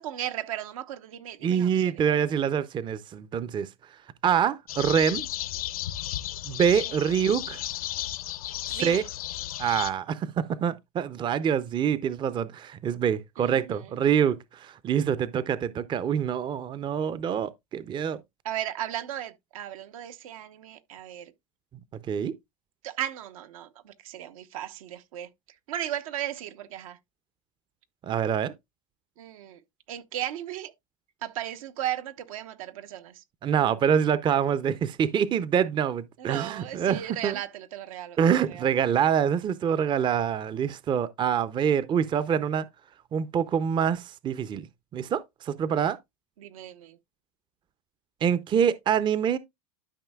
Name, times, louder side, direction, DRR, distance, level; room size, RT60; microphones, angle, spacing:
voice 1, 0.0-2.2 8.7-9.0 13.4-13.6 18.4-21.3 22.8-25.3 25.7-27.0 29.2-29.6 29.9-30.7 31.2-33.2 36.2-38.7 46.4-47.0, right 11 dB, 75° right, 1.0 m, -36 dB
voice 2, 1.4-3.7 4.2-5.3 6.4-7.6 8.7-9.0 9.6-18.2 22.1-22.3 28.0-28.5 33.4-37.4 38.2-42.7 43.1-44.7 44.9-46.0 48.2-49.4, right 8 dB, 25° right, 0.5 m, -25 dB
sound 1, 4.7-9.9, left 13 dB, 85° left, 0.8 m, -34 dB
12.5 x 5.4 x 2.3 m
hypercardioid pair, 105°, 18 cm